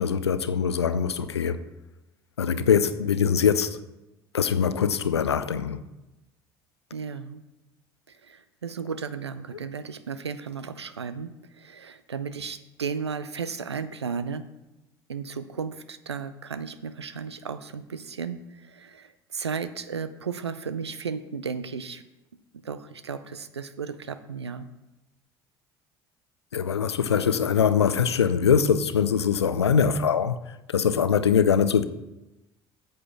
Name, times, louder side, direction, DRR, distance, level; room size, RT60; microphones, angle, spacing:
voice 1, 0.0-1.6 2.4-3.8 4.3-5.8 26.5-31.9, left 7 dB, 85° left, 0.4 m, -23 dB
voice 2, 6.9-7.4 8.1-14.4 15.1-22.0 22.5-24.7, right 6 dB, 90° right, 0.4 m, -34 dB
8.6 x 6.7 x 5.8 m
figure-of-eight pair, 60°, 14 cm